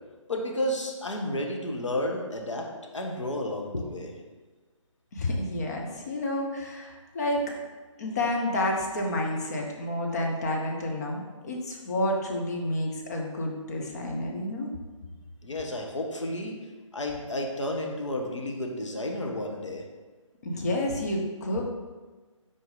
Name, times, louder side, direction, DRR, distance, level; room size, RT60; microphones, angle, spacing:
voice 1, 0.3-2.7 2.9-4.1 15.4-16.6 16.9-19.8, left 1 dB, 65° left, 1 dB, 1.2 m, -31 dB
voice 2, 5.1-7.5 8.0-14.7 20.4-21.6, left 1 dB, 30° left, 0 dB, 0.9 m, -30 dB
5.9 x 4.6 x 3.7 m, 1.3 s
figure-of-eight pair, 145°, 17 cm